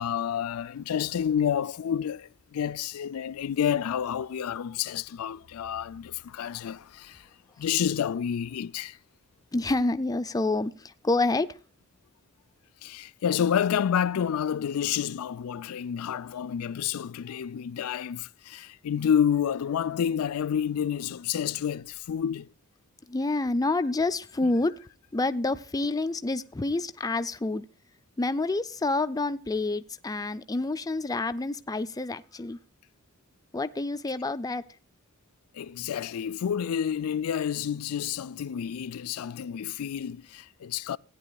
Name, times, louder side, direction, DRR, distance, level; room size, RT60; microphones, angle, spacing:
voice 1, 0.0-7.2 7.6-9.0 12.8-22.5 35.5-41.0, left 8 dB, 80° left, 0.4 m, -29 dB
voice 2, 9.5-11.6 23.1-24.8 25.1-27.7 28.2-32.6 33.5-34.6, left 2 dB, 15° left, 0.5 m, -28 dB
17.0 x 9.8 x 2.3 m
head